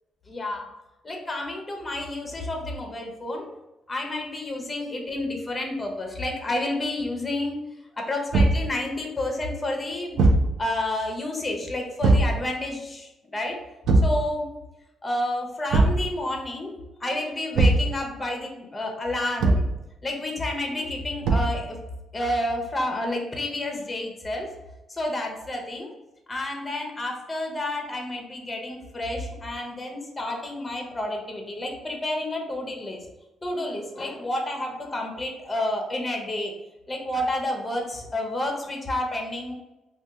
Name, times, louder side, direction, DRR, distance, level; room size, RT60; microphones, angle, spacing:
voice 1, 0.3-0.7 1.0-3.5 3.9-7.6 7.9-10.2 10.6-13.6 14.0-14.5 15.0-19.7 20.0-21.8 22.1-24.5 24.9-25.9 26.3-33.0 33.4-36.5 36.9-39.5, left 1 dB, 20° left, 2 dB, 0.7 m, -30 dB
Thump thud, 8.3-8.7 10.2-10.5 12.0-12.4 13.9-14.2 15.7-16.0 17.5-17.9 19.4-19.7 21.2-21.6, right 2 dB, 75° right, 0.5 m, -19 dB
2.7 x 2.2 x 3.5 m, 1.0 s
cardioid pair, 90°, 0 cm